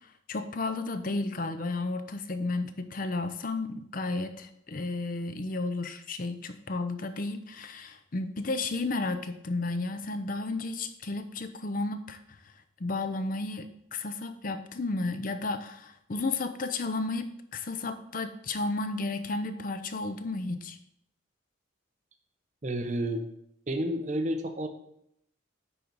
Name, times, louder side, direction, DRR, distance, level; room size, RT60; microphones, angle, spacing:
voice 1, 0.3-12.2 12.4-12.5 12.8-20.8, left 3 dB, 45° left, 9 dB, 0.5 m, -33 dB
voice 2, 22.6-23.3 23.7-24.7, right 1 dB, 35° right, 6 dB, 0.7 m, -30 dB
9.8 x 3.9 x 4.6 m, 0.74 s
head